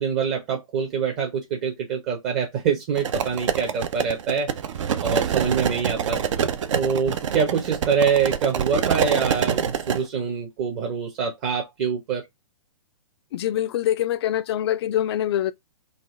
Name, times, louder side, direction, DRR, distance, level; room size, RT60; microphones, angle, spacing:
voice 1, 0.0-4.5 5.0-6.2 6.7-12.2, right 6 dB, 40° right, 1.1 m, -25 dB
sound 1, 3.0-10.0, right 8 dB, 60° right, 0.6 m, -26 dB
voice 2, 13.3-15.5, left 11 dB, 45° left, 0.4 m, -24 dB
4.0 x 2.5 x 3.8 m
hypercardioid pair, 125°, 18 cm